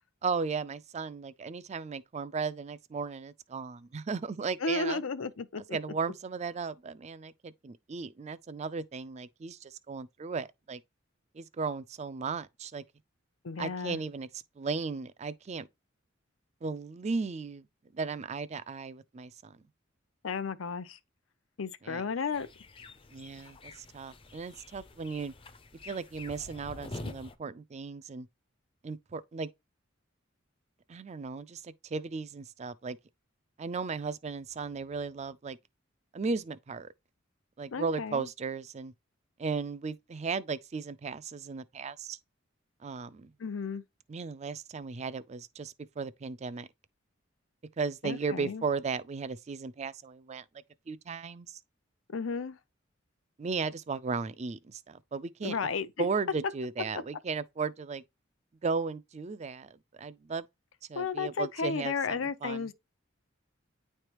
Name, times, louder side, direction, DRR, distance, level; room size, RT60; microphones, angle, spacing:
voice 1, 0.2-5.0 5.7-10.8 11.3-12.8 13.6-14.3 14.6-15.7 16.6-17.6 17.9-19.6 21.8-22.0 23.1-25.3 25.8-28.3 28.8-29.5 30.9-33.0 33.6-35.6 36.1-36.9 37.6-38.9 39.4-42.2 42.8-43.3 44.1-46.7 47.8-50.4 50.9-51.6 53.4-55.6 56.0-58.0 58.6-60.5 60.9-62.7, right 4 dB, 35° right, 0.4 m, -36 dB
voice 2, 4.6-5.8 13.4-14.0 20.2-21.0 21.6-22.5 37.7-38.3 43.4-43.8 48.0-48.6 52.1-52.6 55.4-56.1 61.0-62.7, left 4 dB, 90° left, 0.6 m, -33 dB
sound 1, 22.3-27.3, left 2 dB, 25° left, 0.5 m, -46 dB
9.7 x 3.3 x 3.0 m
head